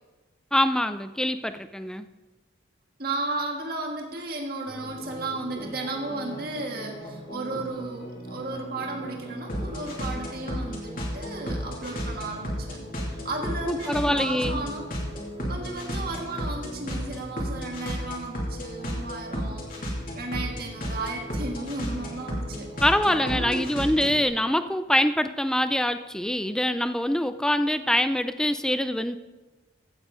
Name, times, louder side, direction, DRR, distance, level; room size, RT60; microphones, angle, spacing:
voice 1, 0.5-2.1 13.7-14.6 22.8-29.2, left 1 dB, 5° left, 10 dB, 0.4 m, -24 dB
voice 2, 3.0-12.8 13.1-14.9 15.5-19.7 20.1-22.7 23.1-23.7, right 2 dB, 50° right, 1 dB, 1.7 m, -34 dB
sound 1, 4.7-24.3, equal, 45° left, 2.7 m, -34 dB
15.5 x 8.3 x 3.9 m, 1.2 s
head